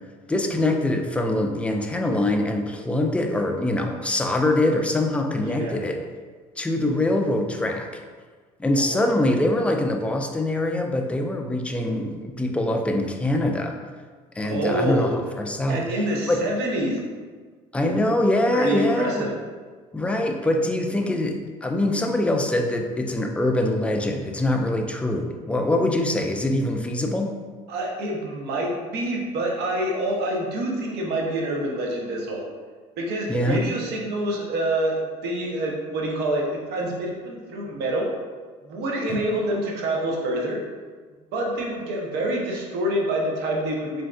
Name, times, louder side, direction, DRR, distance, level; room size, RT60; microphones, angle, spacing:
voice 1, 0.3-6.0 6.6-7.9 8.6-13.8 14.4-15.1 15.4-15.8 16.3-16.4 17.7-19.2 19.9-27.3 33.3-33.6 39.1-39.2, left 1 dB, 5° left, 3 dB, 0.3 m, -23 dB
voice 2, 5.4-5.8 8.8-9.0 14.4-15.2 15.7-17.0 17.9-18.0 18.5-19.3 27.7-32.4 33.0-38.1 38.6-40.6 41.3-44.0, right 1 dB, 65° right, -1 dB, 0.7 m, -26 dB
3.5 x 2.5 x 2.3 m, 1.5 s
supercardioid pair, 75°, 19 cm